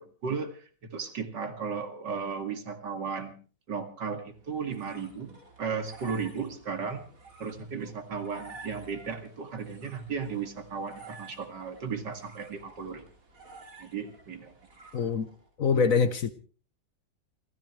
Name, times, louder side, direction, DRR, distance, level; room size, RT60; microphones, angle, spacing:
voice 1, 0.0-3.4 3.7-7.0 7.4-13.1 13.8-14.5, right 5 dB, 70° right, 7 dB, 2.8 m, -35 dB
sound 1, 4.3-15.5, right 3 dB, 45° right, 3.4 m, -52 dB
voice 2, 14.9-15.3 15.6-16.3, left 5 dB, 55° left, 12 dB, 1.2 m, -24 dB
29.0 x 14.0 x 3.2 m, 0.39 s
omnidirectional pair, 2.0 m